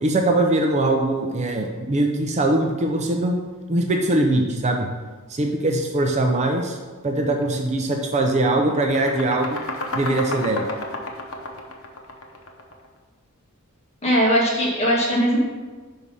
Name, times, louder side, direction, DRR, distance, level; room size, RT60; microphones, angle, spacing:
voice 1, 0.0-3.4 3.7-4.9 5.3-6.8 7.0-9.6 9.9-10.7, right 2 dB, 30° right, 3 dB, 0.5 m, -21 dB
sound 1, 7.3-7.5 7.9-12.8, left 1 dB, 70° left, 0.9 m, -32 dB
voice 2, 14.0-15.4, equal, 30° left, -3 dB, 1.6 m, -19 dB
5.6 x 4.7 x 5.4 m, 1.4 s
head